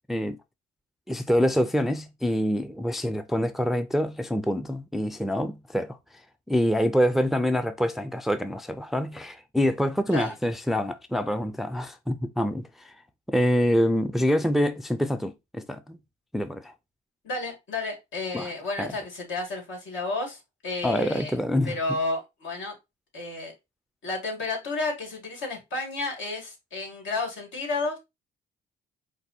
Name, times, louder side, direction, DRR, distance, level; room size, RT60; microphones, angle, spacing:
voice 1, 0.1-0.4 1.1-6.0 6.5-12.9 13.3-16.0 16.3-16.7 18.3-18.5 18.8-18.9 20.8-21.8, equal, ahead, 0.4 m, -26 dB
voice 2, 17.2-21.4 21.6-22.8 23.1-23.5 24.0-28.0, left 2 dB, 75° left, 2.0 m, -31 dB
4.6 x 2.2 x 4.0 m
cardioid pair, 90°, 20 cm